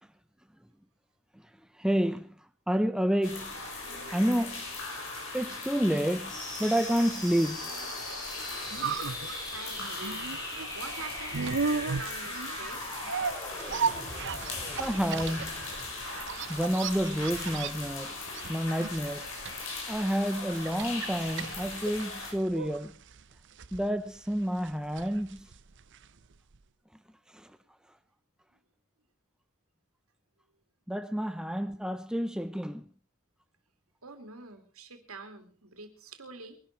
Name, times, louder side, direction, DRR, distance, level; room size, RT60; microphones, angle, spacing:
voice 1, 1.8-2.3 2.7-3.5 4.1-4.6 5.3-7.6 14.8-15.5 16.5-18.2 18.5-19.3 19.9-22.9 23.7-25.5 27.3-27.5 30.9-32.9, equal, 5° right, 0.7 m, -29 dB
sound 1, 3.2-22.3, left 3 dB, 60° left, 5.5 m, -39 dB
sound 2, 6.3-17.3, left 1 dB, 20° left, 5.2 m, -42 dB
sound 3, 8.2-26.3 26.5-26.6, right 5 dB, 55° right, 0.7 m, -36 dB
voice 2, 9.5-10.4 10.7-13.0 34.0-36.6, right 4 dB, 75° right, 2.9 m, -46 dB
22.5 x 12.0 x 4.5 m
head